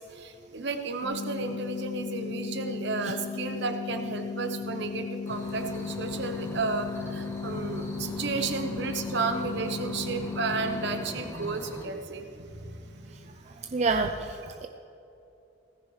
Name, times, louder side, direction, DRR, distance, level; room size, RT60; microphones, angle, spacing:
voice 1, 0.1-13.6, right 4 dB, 65° right, 6 dB, 1.1 m, -33 dB
sound 1, 1.0-11.0, left 5 dB, 65° left, 3.0 m, -36 dB
sound 2, 5.2-11.9, equal, 15° left, 1.3 m, -42 dB
voice 2, 13.7-14.7, right 4 dB, 35° right, 5 dB, 0.5 m, -27 dB
17.0 x 14.5 x 3.2 m, 2.9 s
head